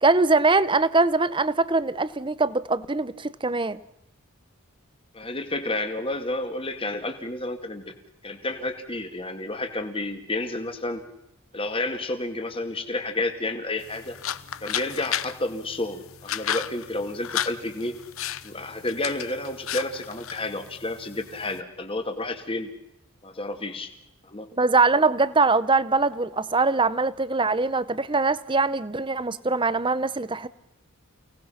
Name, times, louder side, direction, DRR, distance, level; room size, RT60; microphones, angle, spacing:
voice 1, 0.0-3.8 24.6-30.5, right 3 dB, 20° right, 16 dB, 0.8 m, -22 dB
voice 2, 5.1-7.9 8.2-11.0 11.5-14.2 14.6-17.9 18.4-22.7 23.2-23.9 24.2-24.5, left 2 dB, 25° left, 7 dB, 2.2 m, -30 dB
sound 1, 13.8-21.6, left 10 dB, 70° left, 0.9 m, -34 dB
30.0 x 18.5 x 5.8 m, 0.85 s
head